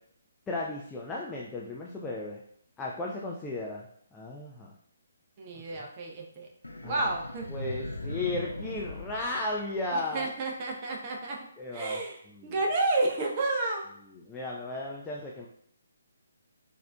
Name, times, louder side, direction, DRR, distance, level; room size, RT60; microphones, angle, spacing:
voice 1, 0.5-2.4 2.8-3.9 4.1-4.7 5.7-5.8 6.8-7.1 7.5-10.3 11.6-12.0 12.3-12.5 14.3-15.5, left 2 dB, 10° left, -3 dB, 0.3 m, -35 dB
voice 2, 5.4-6.5 6.8-7.4 9.9-11.4 11.7-13.8, right 2 dB, 30° right, -1 dB, 0.7 m, -31 dB
sound 1, 6.6-10.1, left 1 dB, 80° left, 0.4 m, -39 dB
4.1 x 2.6 x 2.2 m, 0.66 s
figure-of-eight pair, 140°, 0 cm